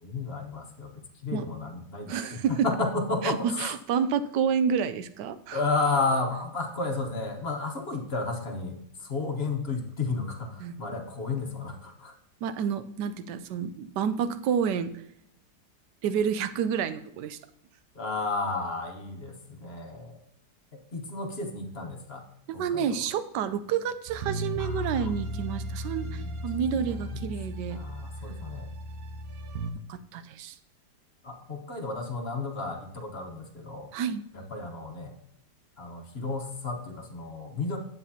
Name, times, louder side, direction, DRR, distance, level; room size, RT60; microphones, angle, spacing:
voice 1, 0.0-3.7 5.5-12.1 17.9-20.2 20.9-22.2 22.5-23.0 24.6-25.1 26.0-26.4 26.8-27.3 27.7-28.7 31.2-33.9 34.3-35.2 35.8-37.8, left 3 dB, 40° left, 4 dB, 1.2 m, -32 dB
voice 2, 2.1-2.7 3.2-5.6 10.6-10.8 12.4-14.9 16.0-17.4 22.5-27.8 29.9-30.6 33.9-34.2, right 7 dB, 90° right, 12 dB, 1.2 m, -29 dB
sound 1, 24.1-29.7, right 1 dB, 65° right, 1.3 m, -35 dB
9.7 x 7.9 x 2.8 m, 0.78 s
omnidirectional pair, 1.8 m